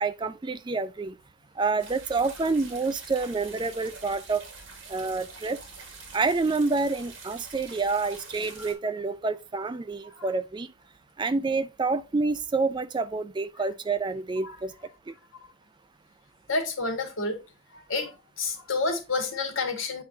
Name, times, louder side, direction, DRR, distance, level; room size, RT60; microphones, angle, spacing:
voice 1, 0.0-1.2 1.6-4.4 4.9-5.6 6.1-10.7 11.2-14.7 15.1-15.2, right 3 dB, 20° right, 0.3 m, -28 dB
sound 1, 1.8-8.7, right 4 dB, 65° right, 2.2 m, -45 dB
voice 2, 16.5-17.4 17.7-20.0, left 3 dB, 75° left, 1.8 m, -29 dB
8.6 x 4.7 x 2.6 m
head